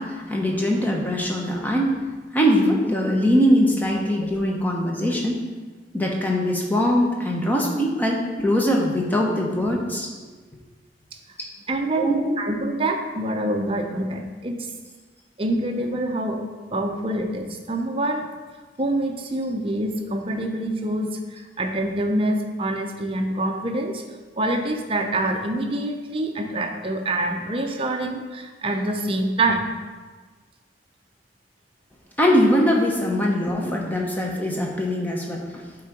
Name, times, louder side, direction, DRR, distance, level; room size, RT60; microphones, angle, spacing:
voice 1, 0.0-1.9 2.3-5.4 5.9-10.1 12.0-12.3 32.2-35.6, equal, 10° left, -1 dB, 0.9 m, -22 dB
voice 2, 11.7-14.7 15.4-18.2 18.8-24.0 24.4-29.7, right 1 dB, 30° right, 3 dB, 0.6 m, -26 dB
8.0 x 3.8 x 4.7 m, 1.4 s
head